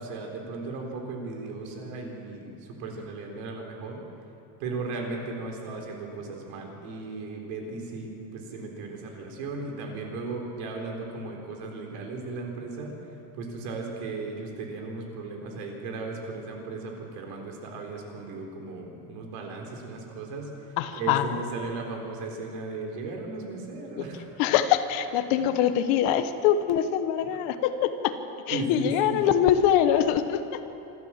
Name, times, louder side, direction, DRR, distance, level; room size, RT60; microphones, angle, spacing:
voice 1, 0.0-4.0 4.6-13.0 13.3-20.5 20.9-24.2 28.5-29.2, right 3 dB, 65° right, 1 dB, 4.0 m, -36 dB
voice 2, 20.8-21.4 24.0-24.1 24.4-28.1 28.5-30.6, left 10 dB, 60° left, 10 dB, 1.2 m, -24 dB
26.5 x 13.0 x 7.5 m, 3.0 s
cardioid pair, 180°, 40 cm